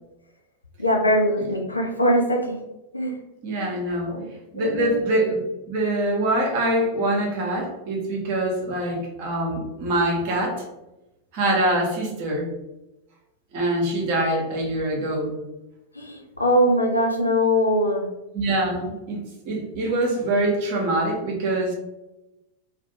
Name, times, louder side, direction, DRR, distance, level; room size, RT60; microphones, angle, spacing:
voice 1, 0.8-2.6 2.9-3.1 4.1-4.3 4.5-5.0 15.9-18.1, equal, 85° left, 1 dB, 0.4 m, -22 dB
voice 2, 3.4-4.1 4.5-10.7 11.3-12.5 13.5-15.4 18.3-21.7, right 1 dB, 45° right, 0 dB, 0.7 m, -24 dB
2.4 x 2.0 x 2.7 m, 0.96 s
figure-of-eight pair, 90°, 0 cm